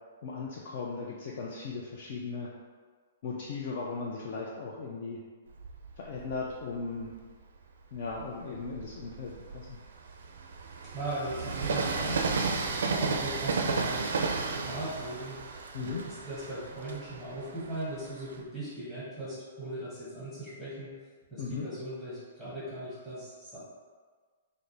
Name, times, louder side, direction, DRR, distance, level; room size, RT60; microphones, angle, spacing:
voice 1, 0.2-2.5 3.2-5.2 6.0-7.1 7.9-9.8 15.7-16.0 21.4-21.7, left 4 dB, 35° left, -3 dB, 0.3 m, -37 dB
Train, 5.5-7.2 7.8-18.4, right 4 dB, 70° right, 0.4 m, -34 dB
voice 2, 10.8-14.2 14.5-15.4 15.8-20.9 21.3-23.6, right 1 dB, 5° left, -11 dB, 1.1 m, -39 dB
3.3 x 2.4 x 3.9 m, 1.6 s
hypercardioid pair, 180°, 0 cm